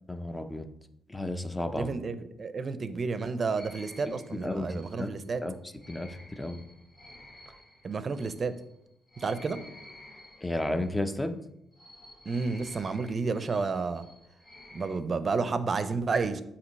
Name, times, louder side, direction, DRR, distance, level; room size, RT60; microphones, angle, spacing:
voice 1, 0.1-0.7 1.1-1.9 4.4-5.1 5.4-5.6 5.9-6.6 10.4-11.4, left 1 dB, 10° left, 8 dB, 0.6 m, -32 dB
voice 2, 1.7-5.4 7.8-8.5 9.2-9.6 12.3-14.0 14.7-16.4, right 4 dB, 40° right, 12 dB, 0.6 m, -31 dB
sound 1, 3.6-11.1 11.7-15.0, left 1 dB, 30° left, 1.7 m, -52 dB
8.3 x 2.9 x 5.4 m, 0.82 s
cardioid pair, 90°, 0 cm